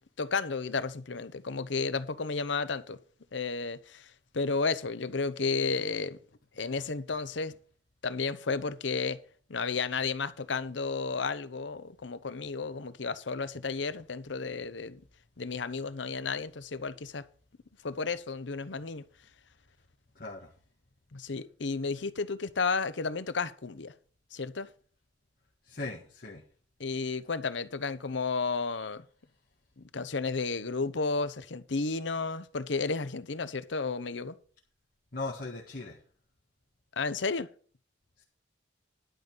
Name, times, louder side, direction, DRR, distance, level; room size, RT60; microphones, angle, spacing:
voice 1, 0.2-3.0 3.3-6.2 6.6-7.6 8.0-9.2 9.5-15.0 15.4-17.2 17.8-19.0 21.1-23.9 24.3-24.7 26.8-29.0 29.8-34.4 37.0-37.5, left 4 dB, 75° left, 0.8 m, -32 dB
voice 2, 20.1-20.5 25.6-26.4 35.1-36.0 38.2-38.3, left 3 dB, 50° left, 1.8 m, -38 dB
11.5 x 5.3 x 7.8 m
head